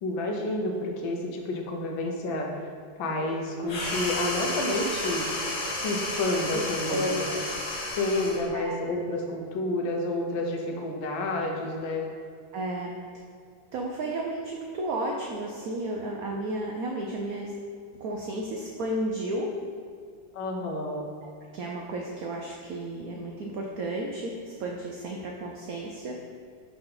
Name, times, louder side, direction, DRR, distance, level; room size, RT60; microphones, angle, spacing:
voice 1, 0.0-2.5 3.0-5.3 5.7-7.2 7.9-12.1 20.3-21.1, left 2 dB, 80° left, 2 dB, 1.5 m, -30 dB
sound 1, 3.7-8.5, left 2 dB, 55° left, 1.4 m, -32 dB
voice 2, 6.9-7.4 8.5-8.8 12.5-12.9 13.7-17.5 18.0-19.5 21.5-26.2, right 1 dB, 85° right, 0 dB, 0.7 m, -32 dB
5.4 x 3.4 x 5.3 m, 2.3 s
omnidirectional pair, 2.2 m